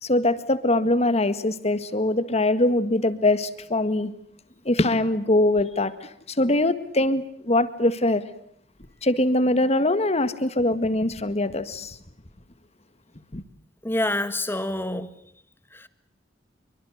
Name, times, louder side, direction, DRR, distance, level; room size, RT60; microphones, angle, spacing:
voice 1, 0.0-4.1 4.7-5.9 6.4-8.2 9.0-12.0 13.3-13.4, left 1 dB, 35° left, 1.8 m, -22 dB
voice 2, 13.8-15.1 15.7-15.9, left 1 dB, 10° left, 1.7 m, -27 dB
27.0 x 24.5 x 8.0 m
head